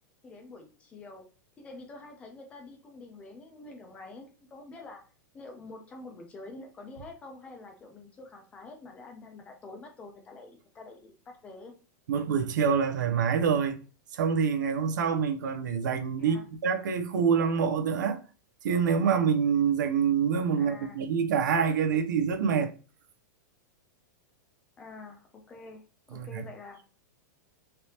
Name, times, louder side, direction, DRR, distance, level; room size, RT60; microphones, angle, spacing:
voice 1, 0.2-1.3 1.6-5.0 5.3-11.7 16.2-16.4 20.6-21.0 24.8-25.8 26.1-26.8, left 3 dB, 15° left, 0.5 m, -47 dB
voice 2, 12.1-13.8 14.1-18.2 18.6-22.7 26.1-26.4, right 6 dB, 85° right, 0.6 m, -26 dB
3.3 x 2.8 x 2.8 m
supercardioid pair, 170°, 10 cm